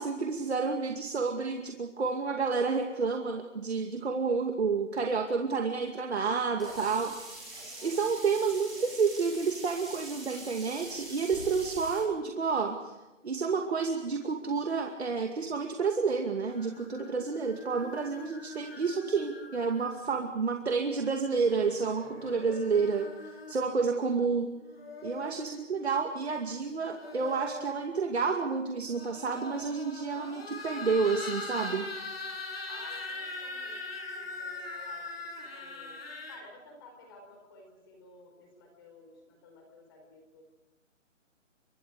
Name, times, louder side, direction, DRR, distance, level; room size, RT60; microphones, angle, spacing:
voice 1, 0.0-7.1 7.8-12.9 13.2-23.1 23.5-24.5 25.0-31.8, right 5 dB, 55° right, 3 dB, 2.4 m, -30 dB
Sink (filling or washing), 6.6-12.0, right 2 dB, ahead, 5.6 m, -44 dB
voice 2, 7.6-7.9 32.7-33.8 34.1-36.0 36.3-40.4, left 3 dB, 20° left, 3 dB, 4.6 m, -54 dB
sound 1, 16.5-20.2 21.4-23.7 24.5-25.5 26.6-27.8 28.8-36.4, left 3 dB, 50° left, 7.9 m, -42 dB
29.0 x 24.5 x 5.1 m, 1.0 s
hypercardioid pair, 175°, 38 cm